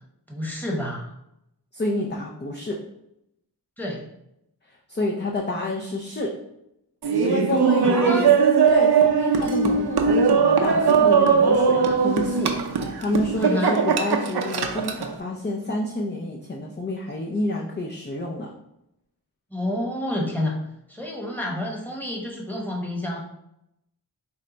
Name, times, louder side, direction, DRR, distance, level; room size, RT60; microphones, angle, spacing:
voice 1, 0.3-1.1 3.8-4.1 7.8-8.5 11.8-12.0 13.4-13.8 19.5-20.6 20.9-23.2, left 1 dB, 5° left, -2 dB, 1.1 m, -29 dB
voice 2, 1.7-2.8 4.9-6.4 7.2-8.4 8.7-18.5, left 1 dB, 25° left, -1 dB, 0.5 m, -28 dB
Laughter, 7.0-15.1, right 6 dB, 70° right, 0.6 m, -20 dB
4.6 x 2.2 x 3.9 m, 0.81 s
wide cardioid pair, 55°, 40 cm